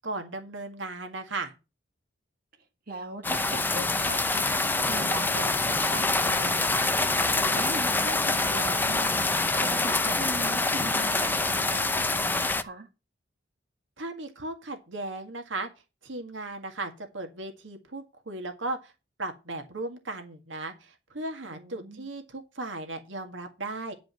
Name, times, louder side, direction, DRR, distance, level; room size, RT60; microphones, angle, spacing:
voice 1, 0.0-1.5 14.0-15.7 16.0-18.9 19.2-23.9, right 2 dB, 80° right, 1.9 m, -36 dB
voice 2, 2.9-4.4 4.8-7.0 7.4-9.2 9.6-12.9 21.5-22.1, right 2 dB, 50° right, 1.8 m, -40 dB
sound 1, 3.2-12.6, left 2 dB, 10° left, 0.6 m, -25 dB
10.5 x 5.1 x 7.6 m
head